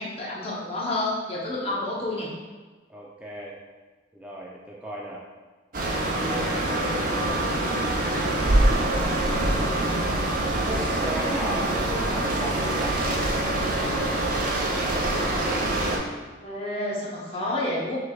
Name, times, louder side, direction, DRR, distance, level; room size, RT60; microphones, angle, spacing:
voice 1, 0.0-2.3 16.4-18.0, left 1 dB, 30° left, -4 dB, 0.9 m, -29 dB
voice 2, 2.9-3.6 4.1-5.2 6.0-6.9 9.1-10.1 10.7-13.0, right 1 dB, 5° right, -5 dB, 0.4 m, -37 dB
sound 1, 5.7-16.0, right 1 dB, 50° right, 0.7 m, -24 dB
6.1 x 3.3 x 2.4 m, 1.3 s
head